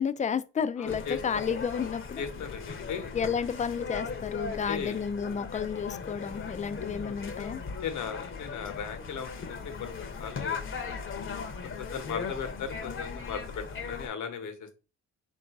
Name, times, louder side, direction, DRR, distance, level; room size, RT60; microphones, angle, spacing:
voice 1, 0.0-2.2 3.1-7.6, left 7 dB, 25° left, 0.4 m, -31 dB
voice 2, 0.8-1.4 2.2-3.1 4.7-5.0 7.7-10.6 11.1-14.7, left 7 dB, 75° left, 1.0 m, -37 dB
sound 1, 0.9-14.1, left 5 dB, 40° left, 0.8 m, -38 dB
3.7 x 2.6 x 4.6 m
cardioid pair, 90°, 30 cm